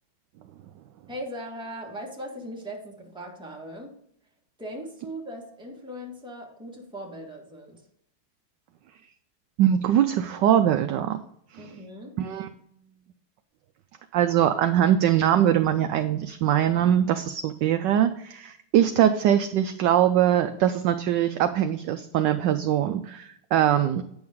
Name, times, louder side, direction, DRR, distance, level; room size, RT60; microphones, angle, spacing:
voice 1, 1.1-3.9 4.6-7.8 11.6-12.1, equal, ahead, -1 dB, 1.5 m, -39 dB
voice 2, 9.6-11.2 11.5-11.6 12.2-12.5 14.1-24.0, right 10 dB, 75° right, 8 dB, 1.0 m, -22 dB
9.5 x 6.2 x 3.6 m, 0.71 s
omnidirectional pair, 2.3 m